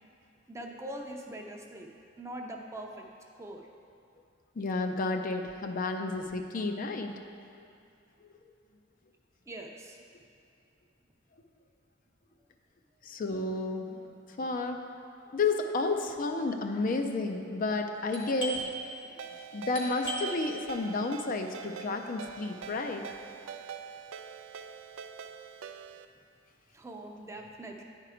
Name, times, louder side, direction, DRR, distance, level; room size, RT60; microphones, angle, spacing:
voice 1, 0.5-1.9 2.2-3.1 3.3-3.7 9.5-10.0 13.1-13.2 26.7-27.8, right 1 dB, 15° right, 1 dB, 0.6 m, -42 dB
voice 2, 4.6-7.2 13.0-14.0 14.4-14.8 15.3-18.7 19.5-23.0, left 3 dB, 45° left, 5 dB, 0.4 m, -31 dB
Doorbell, 18.1-23.5, right 1 dB, 65° left, 1.5 m, -41 dB
Ringtone, 19.2-26.1, right 7 dB, 90° right, 0.4 m, -45 dB
9.9 x 4.5 x 4.9 m, 2.6 s
head